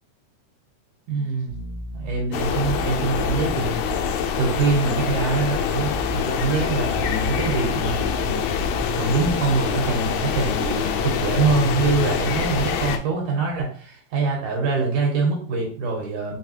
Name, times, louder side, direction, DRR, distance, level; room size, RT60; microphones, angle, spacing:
voice 1, 1.1-1.6 1.9-3.7 4.4-8.4 8.9-16.4, right 4 dB, 80° right, -1 dB, 2.5 m, -24 dB
sound 1, 1.5-4.1 5.8-9.4 10.5-12.1, left 2 dB, 50° left, 1.0 m, -34 dB
sound 2, 2.3-13.0, left 7 dB, 80° left, 1.9 m, -25 dB
5.2 x 3.3 x 2.8 m, 0.44 s
omnidirectional pair, 3.3 m